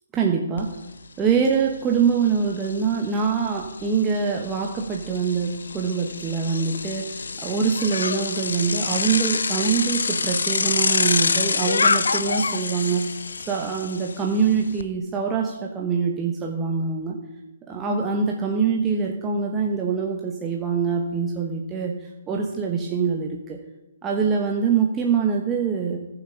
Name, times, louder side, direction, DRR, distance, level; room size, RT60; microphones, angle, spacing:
voice 1, 0.1-0.7 1.2-13.0 13.5-17.2 17.7-23.6 24.0-26.0, right 6 dB, 15° right, 0 dB, 1.2 m, -24 dB
Bicycle, 0.6-0.7 1.0-14.8, left 4 dB, 70° left, 0.7 m, -27 dB
20.0 x 7.3 x 3.9 m, 1.1 s
figure-of-eight pair, 130°, 0 cm